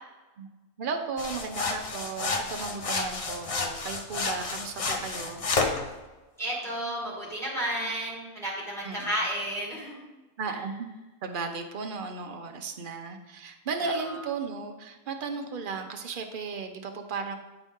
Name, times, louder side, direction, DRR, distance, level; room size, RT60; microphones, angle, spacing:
voice 1, 0.8-5.4 8.8-9.1 10.4-10.9 11.2-17.3, right 4 dB, 55° right, 5 dB, 0.6 m, -35 dB
sound 1, 1.2-5.8, left 4 dB, 70° left, 0.3 m, -30 dB
voice 2, 6.4-10.0 10.5-10.6 13.8-14.2, right 1 dB, ahead, -5 dB, 2.0 m, -32 dB
9.1 x 4.1 x 3.6 m, 1.1 s
omnidirectional pair, 1.5 m